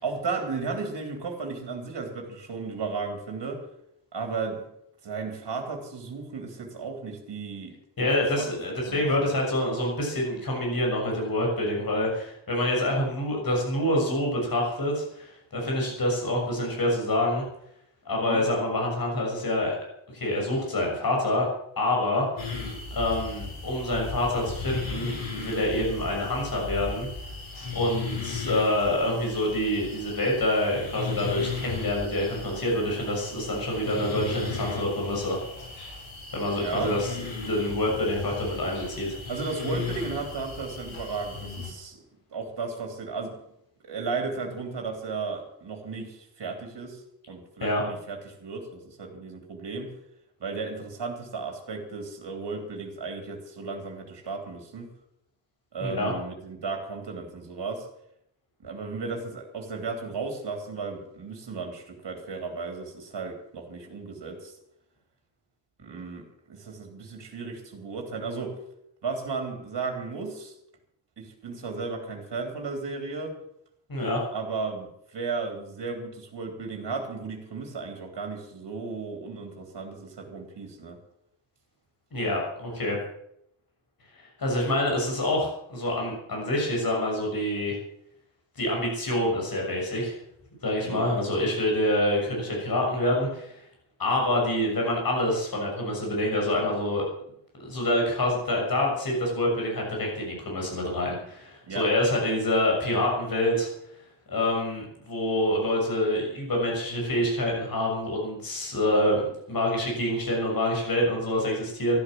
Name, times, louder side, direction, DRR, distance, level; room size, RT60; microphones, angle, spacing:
voice 1, 0.0-3.6 4.1-4.7 5.0-8.1 8.4-8.5 8.9-9.3 18.2-18.4 36.5-36.9 39.3-42.0 42.3-43.3 43.8-49.9 50.4-54.9 55.7-57.9 58.6-64.5 65.8-68.6 69.0-70.5 71.2-73.4 74.3-81.0 90.8-91.2 101.7-101.9, right 4 dB, 55° right, 4 dB, 3.3 m, -34 dB
voice 2, 8.0-17.4 18.0-19.7 20.1-21.5 21.8-22.4 22.9-27.1 27.7-35.4 36.3-37.1 37.5-39.2 47.6-47.8 55.8-56.1 73.9-74.2 82.1-83.0 84.1-87.8 88.5-90.2 90.6-93.6 94.0-97.0 97.6-103.7 104.3-112.0, left 1 dB, 45° left, -1 dB, 6.7 m, -26 dB
sound 1, 22.4-41.7, left 4 dB, 75° left, 6.9 m, -36 dB
13.0 x 12.0 x 7.7 m, 0.75 s
wide cardioid pair, 155°, 48 cm